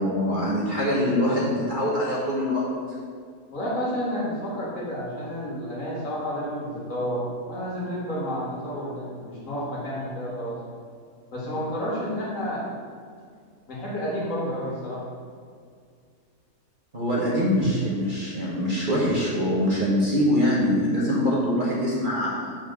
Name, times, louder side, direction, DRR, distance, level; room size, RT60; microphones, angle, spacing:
voice 1, 0.0-2.6 16.9-22.6, equal, 35° right, -6 dB, 1.1 m, -24 dB
voice 2, 3.5-10.6 11.3-12.7 13.7-15.0 17.6-17.7, equal, 55° left, -7 dB, 2.3 m, -30 dB
5.5 x 4.5 x 6.3 m, 2.2 s
omnidirectional pair, 1.7 m